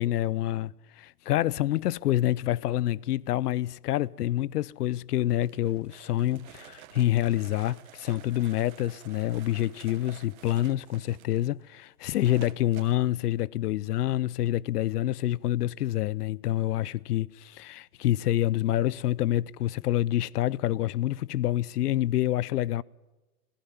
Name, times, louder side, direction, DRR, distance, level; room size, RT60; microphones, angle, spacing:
voice 1, 0.0-22.8, left 14 dB, 90° left, 0.6 m, -27 dB
sound 1, 5.4-13.0, right 11 dB, 65° right, 1.5 m, -50 dB
18.5 x 16.0 x 9.4 m
hypercardioid pair, 150°, 45 cm